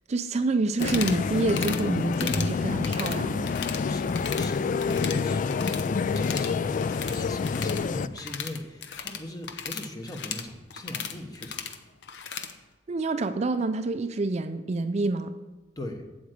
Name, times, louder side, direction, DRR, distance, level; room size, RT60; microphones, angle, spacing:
voice 1, 0.1-3.5 12.9-15.4, right 3 dB, 40° right, 9 dB, 0.4 m, -27 dB
sound 1, 0.7-1.2 1.5-1.8 2.1-2.5 2.8-3.8 4.1-4.5 4.8-5.9 6.1-12.5, left 7 dB, 70° left, 0.8 m, -36 dB
sound 2, 0.8-8.1, left 5 dB, 45° left, 0.3 m, -27 dB
voice 2, 3.8-11.6 15.8-16.0, left 1 dB, 20° left, 4 dB, 1.2 m, -39 dB
8.1 x 8.0 x 6.6 m, 1.1 s
head